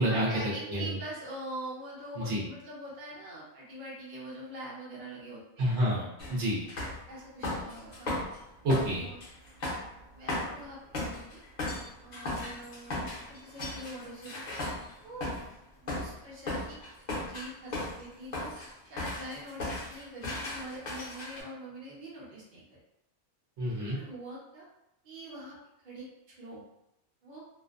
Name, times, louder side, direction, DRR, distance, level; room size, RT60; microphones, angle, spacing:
voice 1, 0.0-5.8 7.1-8.1 8.6-9.2 10.1-11.4 12.0-14.3 15.0-15.3 15.8-16.8 17.1-22.8 23.9-24.7 25.0-26.6 27.2-27.4, right 1 dB, 50° right, -6 dB, 0.9 m, -44 dB
voice 2, 2.2-2.5 5.6-6.6 8.6-9.1 23.6-24.0, equal, 80° right, -4 dB, 1.0 m, -28 dB
sound 1, 6.2-6.4 6.7-8.4 8.7-15.5 15.9-16.1 16.5-18.0 18.3-18.7 19.0-21.4, left 2 dB, 45° left, 0.7 m, -36 dB
2.5 x 2.1 x 2.4 m, 0.85 s
omnidirectional pair, 1.1 m